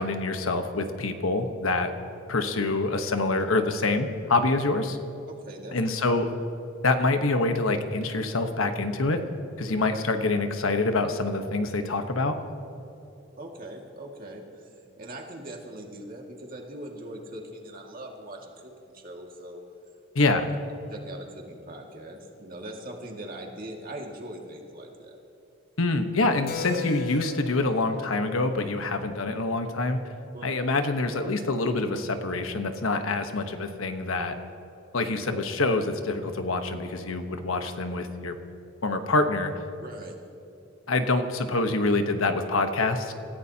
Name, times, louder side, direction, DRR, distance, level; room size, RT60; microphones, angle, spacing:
voice 1, 0.0-1.9 2.3-5.0 5.7-6.3 6.8-9.2 9.6-12.4 20.1-20.5 25.8-30.0 30.4-34.4 34.9-38.4 38.8-39.5 40.9-43.1, left 2 dB, 85° left, 7 dB, 1.1 m, -26 dB
voice 2, 5.3-5.8 13.4-19.6 20.2-20.3 20.9-25.2 30.3-30.6 39.8-40.2, right 1 dB, 45° right, 0 dB, 2.1 m, -41 dB
Keyboard (musical), 26.5-30.6, left 5 dB, 45° left, 0.6 m, -39 dB
28.5 x 15.0 x 2.9 m, 3.0 s
head